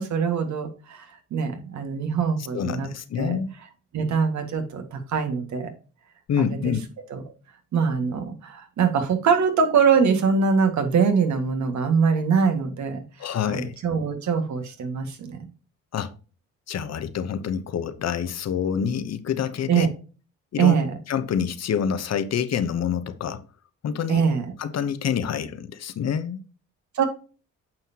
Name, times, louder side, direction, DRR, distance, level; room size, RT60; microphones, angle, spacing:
voice 1, 0.0-2.9 3.2-3.4 3.9-5.7 6.4-6.7 7.1-7.2 7.7-15.5 19.7-19.9 20.6-20.9 24.1-24.5 26.9-27.0, right 6 dB, 70° right, 2.0 m, -23 dB
voice 2, 2.5-3.5 6.3-6.8 13.2-13.7 15.9-16.1 16.7-19.9 20.5-20.7 21.1-23.4 23.8-24.2 24.6-26.4, left 8 dB, 60° left, 1.0 m, -27 dB
9.0 x 5.7 x 2.9 m
cardioid pair, 90°, 30 cm